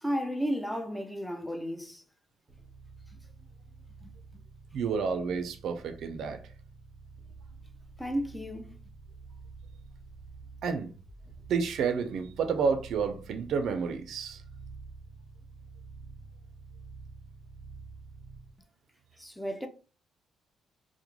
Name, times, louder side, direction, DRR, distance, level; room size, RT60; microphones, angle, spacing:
voice 1, 0.0-2.0 4.0-4.1 8.0-8.7 19.2-19.7, equal, 5° left, 0.4 m, -33 dB
sound 1, 2.5-18.6, right 4 dB, 25° right, 0.9 m, -49 dB
voice 2, 4.7-6.4 10.6-10.9 11.5-14.4, right 5 dB, 70° right, 0.4 m, -30 dB
2.2 x 2.1 x 3.0 m
cardioid pair, 90°, 0 cm